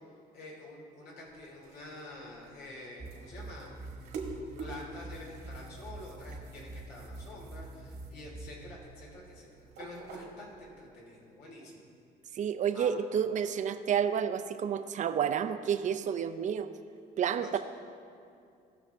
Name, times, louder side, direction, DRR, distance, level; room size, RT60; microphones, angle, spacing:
voice 1, 0.3-3.9 4.6-11.9 12.7-12.9 17.4-17.6, left 2 dB, 70° left, -2 dB, 2.8 m, -47 dB
sound 1, 1.2-10.8, right 3 dB, 85° right, 1.7 m, -48 dB
sound 2, 3.0-8.5, right 2 dB, 10° right, 1.0 m, -45 dB
voice 2, 12.3-16.7 17.2-17.6, right 8 dB, 45° right, 10 dB, 0.6 m, -30 dB
17.5 x 6.3 x 3.5 m, 2.5 s
cardioid pair, 110°, 17 cm